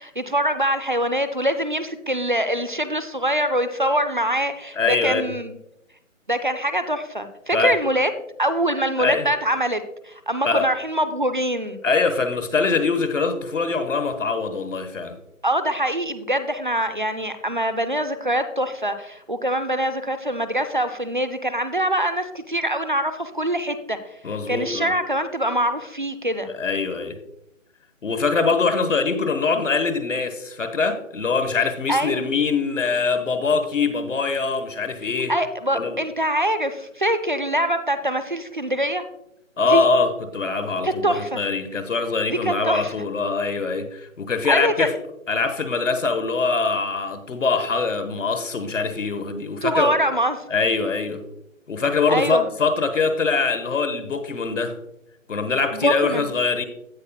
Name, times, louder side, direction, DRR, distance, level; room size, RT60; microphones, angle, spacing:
voice 1, 0.0-5.6 6.3-8.1 8.4-11.8 15.4-24.0 24.5-26.5 31.9-32.2 35.3-39.0 39.6-39.9 40.8-41.4 42.3-42.9 44.5-44.9 49.6-50.4 52.1-52.5 55.7-56.3, right 1 dB, 40° right, 10 dB, 0.5 m, -24 dB
voice 2, 4.8-5.2 7.5-7.7 9.0-9.3 10.4-10.7 11.8-15.2 24.2-24.9 26.6-27.2 28.0-35.3 35.7-36.0 39.6-44.9 45.3-49.9 50.5-51.2 51.7-54.8 55.3-56.7, left 4 dB, 65° left, 8 dB, 1.3 m, -23 dB
16.0 x 5.6 x 2.3 m, 0.80 s
hypercardioid pair, 175°, 40 cm